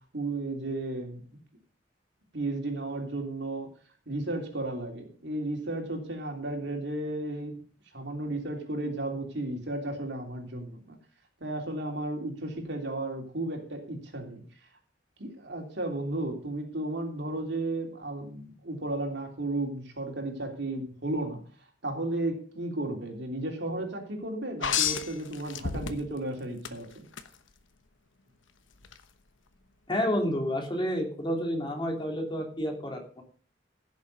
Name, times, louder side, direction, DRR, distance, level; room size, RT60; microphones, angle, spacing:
voice 1, 0.1-1.2 2.3-3.7 4.1-7.6 7.9-11.0 11.4-14.4 15.2-27.0, right 2 dB, 65° right, 2 dB, 3.3 m, -34 dB
sound 1, 24.6-26.2 26.6-27.3 28.8-29.0, left 8 dB, 85° left, 1.1 m, -30 dB
voice 2, 29.9-33.2, equal, 25° left, 2 dB, 3.2 m, -30 dB
16.0 x 7.2 x 5.4 m, 0.43 s
head